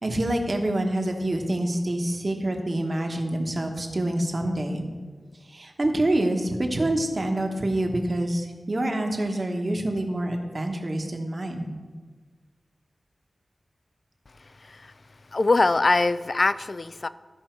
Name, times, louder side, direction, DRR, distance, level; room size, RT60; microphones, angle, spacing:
voice 1, 0.0-4.8 5.5-11.7, right 1 dB, 40° right, 3 dB, 1.2 m, -26 dB
voice 2, 14.4-14.9 15.3-17.1, left 3 dB, 50° left, 14 dB, 0.3 m, -23 dB
14.0 x 5.5 x 4.6 m, 1.4 s
wide cardioid pair, 90°, 0 cm